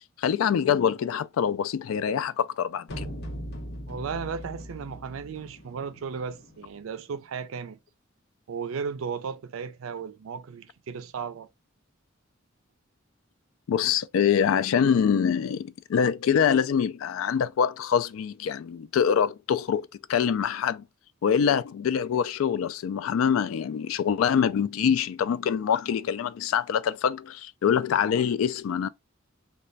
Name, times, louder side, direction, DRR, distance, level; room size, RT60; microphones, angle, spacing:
voice 1, 0.2-3.1 13.7-20.9 21.2-28.9, left 7 dB, 90° left, 0.3 m, -25 dB
sound 1, 2.9-6.9, equal, 55° left, 0.9 m, -40 dB
voice 2, 3.9-7.8 8.5-11.5, right 6 dB, 90° right, 0.4 m, -35 dB
3.2 x 2.2 x 3.9 m
head